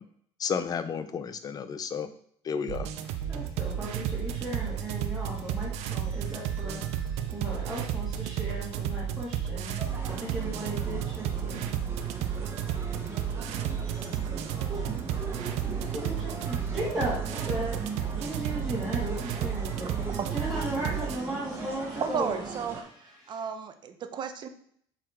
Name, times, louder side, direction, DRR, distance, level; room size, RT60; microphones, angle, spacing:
voice 1, 0.4-2.1 2.4-2.9, left 6 dB, 35° left, 12 dB, 0.7 m, -32 dB
sound 1, 2.7-21.2, right 9 dB, 70° right, 0.7 m, -32 dB
voice 2, 3.1-9.7 10.0-11.7 12.0-12.3 13.8-14.9 15.6-22.6 22.8-23.5, right 1 dB, 5° right, -8 dB, 2.3 m, -37 dB
sound 2, 9.8-22.8, right 3 dB, 20° right, 1.5 m, -40 dB
voice 3, 22.0-22.9 23.3-24.5, right 7 dB, 40° right, 9 dB, 0.8 m, -33 dB
7.7 x 4.2 x 4.5 m, 0.63 s
cardioid pair, 125°, 12 cm